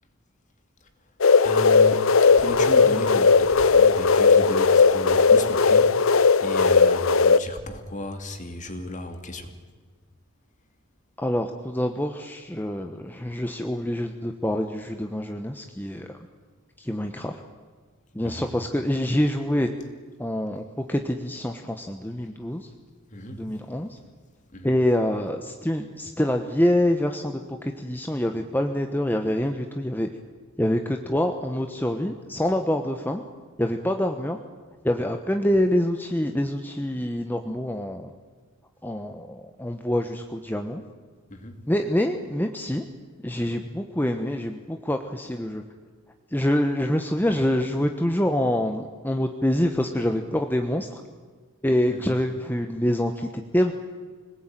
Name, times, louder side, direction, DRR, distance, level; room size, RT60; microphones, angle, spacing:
sound 1, 1.2-7.4, left 4 dB, 75° left, 0.8 m, -17 dB
voice 1, 1.4-9.5 18.2-18.5 23.1-23.6 24.5-24.8 41.3-41.6 51.9-52.2, left 1 dB, 35° left, 6 dB, 2.6 m, -35 dB
voice 2, 11.2-16.1 16.8-17.4 18.1-19.7 20.2-22.7 23.3-24.0 24.6-30.1 30.6-33.2 33.6-34.4 34.8-38.1 38.8-40.8 41.7-42.9 43.2-45.6 46.3-51.0 51.6-53.7, left 1 dB, 10° left, 5 dB, 1.1 m, -26 dB
26.0 x 19.5 x 9.1 m, 1.5 s
head